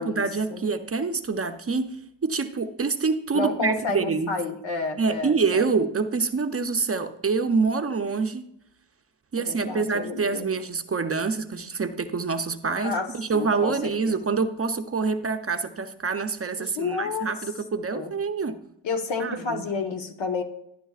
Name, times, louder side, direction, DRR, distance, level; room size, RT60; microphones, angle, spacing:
voice 1, 0.0-4.3 5.0-8.5 9.3-18.6 19.2-19.6, right 4 dB, 30° right, 8 dB, 0.6 m, -26 dB
voice 2, 3.3-5.6 9.4-10.5 12.8-14.2 16.6-17.3 17.9-18.1 18.8-20.4, left 4 dB, 70° left, 7 dB, 1.2 m, -30 dB
11.5 x 11.0 x 2.4 m, 0.77 s
cardioid pair, 80°, 47 cm